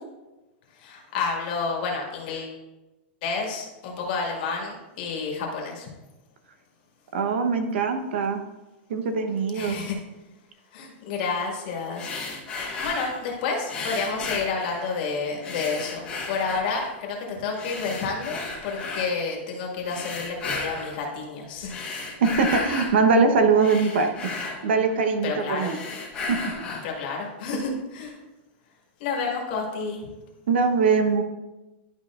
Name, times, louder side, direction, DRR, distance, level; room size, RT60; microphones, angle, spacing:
voice 1, 0.8-2.5 3.2-5.9 9.5-10.0 10.7-12.1 12.8-21.8 25.2-25.8 26.8-28.2 29.0-30.0, left 4 dB, 45° left, -1 dB, 1.8 m, -30 dB
voice 2, 7.1-8.4 8.9-9.8 22.2-24.3 24.6-25.8 26.3-26.5 30.5-31.2, right 4 dB, 70° right, 7 dB, 0.9 m, -22 dB
sound 1, 11.9-13.2 13.7-15.1 15.4-17.0 17.5-19.1 19.8-21.0 21.6-23.0 23.3-25.2 25.5-27.0, left 3 dB, 15° left, 1.3 m, -34 dB
11.5 x 5.3 x 2.4 m, 1.1 s
supercardioid pair, 170°, 6 cm